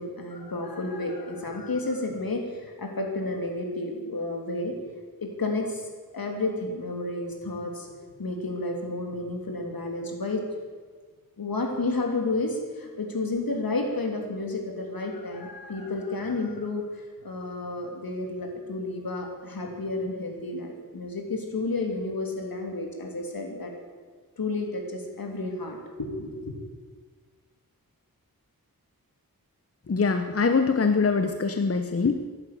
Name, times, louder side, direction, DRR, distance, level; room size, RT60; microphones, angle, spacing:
voice 1, 0.0-4.7 5.2-5.9 6.1-7.9 8.2-10.4 11.4-16.8 17.2-23.7 24.4-26.5, left 2 dB, 70° left, 2 dB, 3.1 m, -31 dB
voice 2, 29.9-32.3, left 4 dB, 40° left, 7 dB, 0.9 m, -23 dB
15.0 x 11.0 x 8.5 m, 1.5 s
wide cardioid pair, 85°, 36 cm